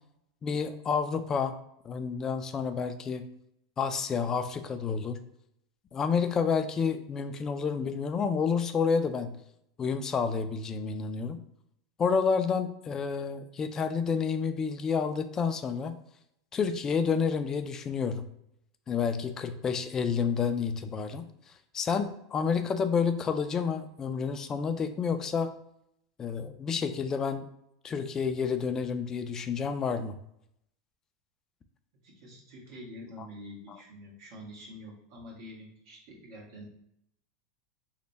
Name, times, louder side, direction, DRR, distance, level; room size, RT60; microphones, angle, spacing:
voice 1, 0.4-1.6 1.8-3.3 3.8-5.2 5.9-9.4 9.8-11.4 12.0-16.0 16.5-18.3 18.9-21.3 21.7-25.5 26.2-27.4 27.8-30.2 33.2-33.3, left 6 dB, 25° left, 9 dB, 0.3 m, -29 dB
voice 2, 32.0-36.6, equal, 60° right, -3 dB, 1.3 m, -46 dB
3.2 x 2.1 x 3.9 m, 0.77 s
supercardioid pair, 120°, 2 cm